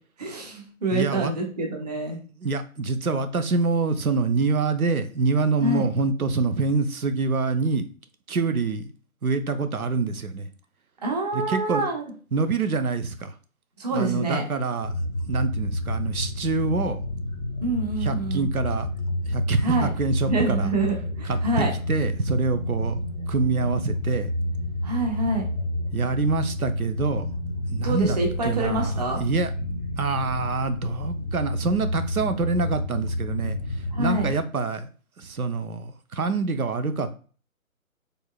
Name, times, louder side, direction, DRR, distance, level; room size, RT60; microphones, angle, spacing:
voice 1, 0.2-2.2 5.6-5.9 11.0-12.1 13.8-14.4 17.6-18.5 19.6-19.9 20.3-21.7 24.8-25.4 27.8-29.2 33.9-34.3, right 2 dB, 30° right, 1 dB, 0.9 m, -26 dB
voice 2, 0.9-1.3 2.1-7.9 8.3-8.9 9.2-10.5 11.3-11.9 12.3-13.3 13.9-15.0 15.3-17.0 18.0-18.9 19.3-20.7 21.3-23.0 23.3-24.3 25.9-27.3 27.7-29.5 30.0-33.6 34.0-34.9 35.2-37.1, right 4 dB, 85° right, 10 dB, 0.7 m, -26 dB
sound 1, 14.8-34.4, left 1 dB, 25° left, 0.6 m, -29 dB
4.4 x 3.3 x 2.3 m, 0.39 s
figure-of-eight pair, 145°, 42 cm